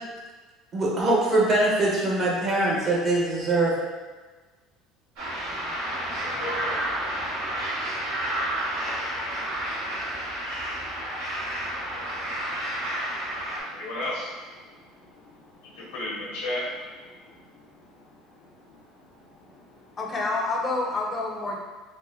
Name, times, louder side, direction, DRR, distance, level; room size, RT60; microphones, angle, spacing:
voice 1, 0.7-3.7, right 2 dB, 40° right, -4 dB, 1.1 m, -22 dB
sound 1, 5.2-13.6, right 1 dB, 75° right, 1.3 m, -30 dB
voice 2, 6.2-7.7 9.2-10.2 11.4-20.0, left 1 dB, 85° left, -6 dB, 1.1 m, -39 dB
voice 3, 20.0-21.6, left 2 dB, 30° left, 0 dB, 0.6 m, -28 dB
4.1 x 2.2 x 2.6 m, 1.3 s
supercardioid pair, 95°, 0 cm